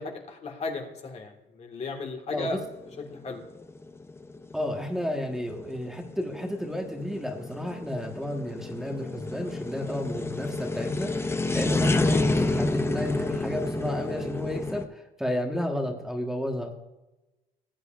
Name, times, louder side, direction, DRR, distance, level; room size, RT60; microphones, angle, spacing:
voice 1, 0.0-2.6 3.1-3.4, left 3 dB, 40° left, 3 dB, 1.9 m, -35 dB
sound 1, 2.4-14.8, left 2 dB, 15° left, 0.7 m, -29 dB
voice 2, 4.5-16.7, left 1 dB, ahead, 0 dB, 1.5 m, -32 dB
18.0 x 8.2 x 2.5 m, 1.0 s
cardioid pair, 110°, 17 cm